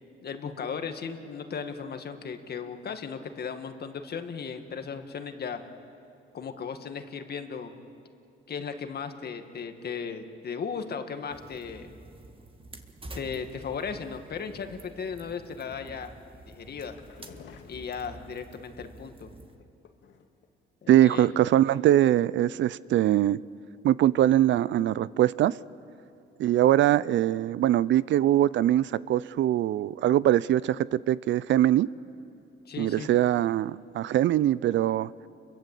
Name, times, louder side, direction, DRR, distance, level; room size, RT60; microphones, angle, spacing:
voice 1, 0.2-5.6 6.3-7.7 8.5-11.9 13.1-16.1 16.5-17.0 17.7-19.3 20.8-21.3 32.7-33.1, left 6 dB, 55° left, 2.0 m, -36 dB
sound 1, 11.3-19.6, right 2 dB, 25° right, 2.0 m, -48 dB
sound 2, 16.4-18.5 19.5-20.4 20.9-21.3 21.6-21.7 22.0-22.1, left 7 dB, 70° left, 2.1 m, -52 dB
voice 2, 20.9-23.4 23.8-25.6 26.4-31.9 32.8-35.1, right 12 dB, 70° right, 0.5 m, -22 dB
29.0 x 22.5 x 8.4 m
cardioid pair, 90°, 20 cm